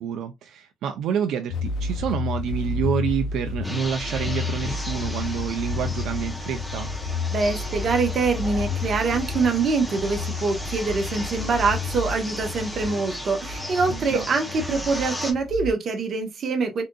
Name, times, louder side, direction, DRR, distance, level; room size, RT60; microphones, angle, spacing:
voice 1, 0.0-6.9 13.9-14.3, right 8 dB, 70° right, 0.4 m, -28 dB
sound 1, 1.5-15.7, left 4 dB, 70° left, 0.6 m, -31 dB
sound 2, 3.6-15.3, equal, 5° left, 0.6 m, -36 dB
voice 2, 7.3-16.8, right 4 dB, 40° right, 0.9 m, -24 dB
3.7 x 2.6 x 2.2 m
cardioid pair, 155°, 0 cm